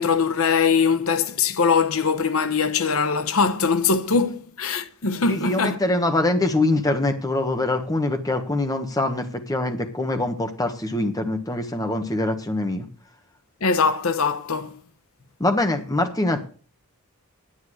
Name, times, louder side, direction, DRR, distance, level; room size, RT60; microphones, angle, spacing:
voice 1, 0.0-5.8 13.6-14.8, left 5 dB, 75° left, 0.9 m, -22 dB
voice 2, 5.3-12.8 15.4-16.5, left 2 dB, 15° left, 1.3 m, -24 dB
10.0 x 9.2 x 6.4 m
head